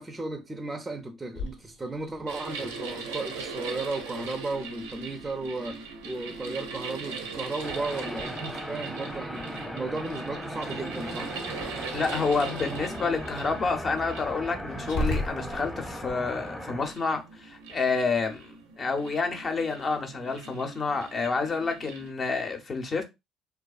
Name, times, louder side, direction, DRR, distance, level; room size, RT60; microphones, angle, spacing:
voice 1, 0.0-11.3, right 2 dB, 20° right, 0.4 m, -35 dB
Growling, 1.3-16.1, left 1 dB, 80° left, 0.7 m, -41 dB
sound 1, 2.3-22.1, right 4 dB, 90° right, 0.5 m, -40 dB
sound 2, 7.6-16.9, equal, 5° left, 0.8 m, -38 dB
voice 2, 11.9-18.4 18.8-23.0, left 4 dB, 40° left, 0.6 m, -29 dB
2.4 x 2.2 x 2.3 m
hypercardioid pair, 65°, 0 cm